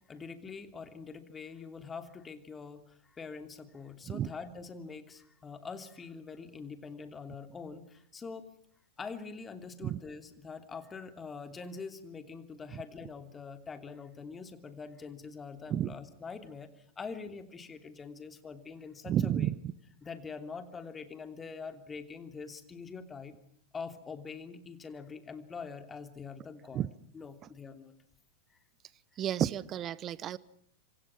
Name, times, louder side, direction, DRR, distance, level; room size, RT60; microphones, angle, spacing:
voice 1, 0.1-8.5 9.0-19.5 20.0-23.3 23.7-26.9 27.1-27.9 28.5-28.6 29.1-29.2, left 5 dB, 20° left, 9 dB, 3.0 m, -44 dB
voice 2, 19.1-19.5 26.7-26.9 29.2-30.4, right 11 dB, 30° right, 22 dB, 1.0 m, -31 dB
26.5 x 26.0 x 6.0 m, 0.70 s
figure-of-eight pair, 90°, 0 cm